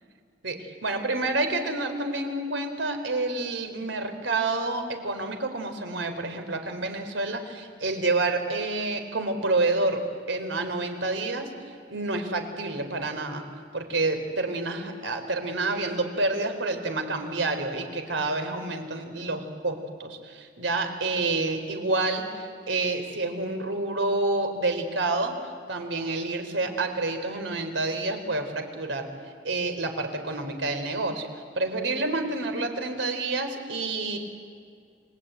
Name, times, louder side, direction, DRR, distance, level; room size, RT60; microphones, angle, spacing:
voice 1, 0.4-11.5 11.9-13.4 13.7-25.3 25.7-29.1 29.4-31.3 31.6-34.2, right 2 dB, 90° right, 7 dB, 3.8 m, -28 dB
29.0 x 21.0 x 9.2 m, 2.2 s
head